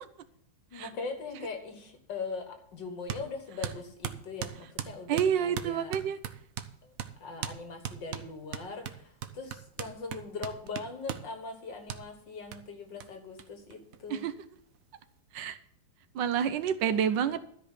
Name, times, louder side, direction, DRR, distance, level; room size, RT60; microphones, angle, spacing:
voice 1, 0.7-6.0 6.8-6.9 7.2-14.2, left 4 dB, 70° left, 5 dB, 2.2 m, -41 dB
sound 1, 3.1-3.3 3.6-6.7 7.0-7.1 7.4-7.6 7.8-11.3 11.9-12.0 12.5-12.6 13.0-13.1 13.4-13.5 13.7-14.4, right 9 dB, 60° right, 1.0 m, -38 dB
voice 2, 5.1-6.2 14.1-14.3 15.3-15.6 16.1-17.5, right 8 dB, 75° right, 12 dB, 1.4 m, -28 dB
13.0 x 5.4 x 8.2 m, 0.68 s
omnidirectional pair, 2.1 m